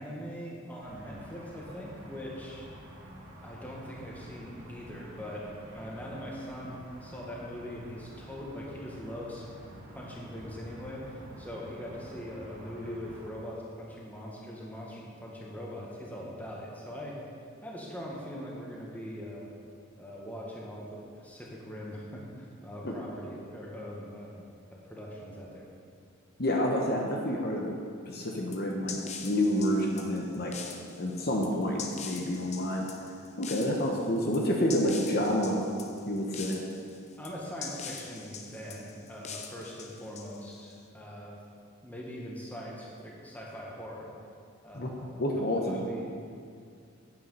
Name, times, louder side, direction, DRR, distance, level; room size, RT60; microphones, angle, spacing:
voice 1, 0.0-2.7 3.4-5.5 5.7-9.5 9.9-11.1 11.4-17.2 17.6-19.5 20.0-24.4 24.7-25.6 37.2-41.4 41.8-44.1 44.6-45.2 45.5-46.1, equal, 5° left, -4 dB, 1.6 m, -41 dB
sound 1, 0.8-13.3, right 1 dB, 60° right, 2.3 m, -49 dB
voice 2, 26.4-27.8 28.0-30.5 31.0-32.8 33.4-35.6 36.1-36.6 44.7-45.8, left 1 dB, 45° left, -1 dB, 1.0 m, -29 dB
sound 2, 28.5-40.7, left 6 dB, 30° left, 0.7 m, -43 dB
9.2 x 8.5 x 5.6 m, 2.3 s
head